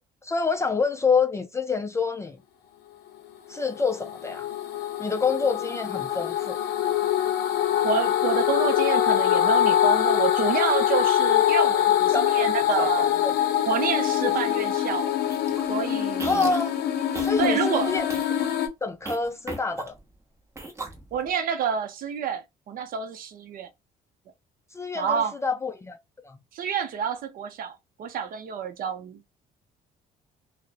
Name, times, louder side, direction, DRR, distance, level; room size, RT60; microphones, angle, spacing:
voice 1, 0.2-2.4 3.5-4.5 5.0-6.6 12.1-12.5 12.8-13.3 16.2-16.7 17.1-18.1 18.8-20.0 24.7-26.0 26.2-26.4, left 4 dB, 15° left, 0.3 m, -27 dB
sound 1, 3.5-18.7, left 11 dB, 75° left, 0.6 m, -24 dB
voice 2, 7.8-13.1 13.7-15.1 15.7-16.5 17.4-17.9 21.1-23.7 24.9-25.3 26.5-29.2, right 7 dB, 55° right, 0.5 m, -28 dB
sound 2, 15.3-15.6 16.1-16.7 17.1-17.5 18.0-18.4 19.1-20.1 20.6-21.3, right 2 dB, 15° right, 0.8 m, -36 dB
2.5 x 2.0 x 2.4 m
cardioid pair, 110°, 17 cm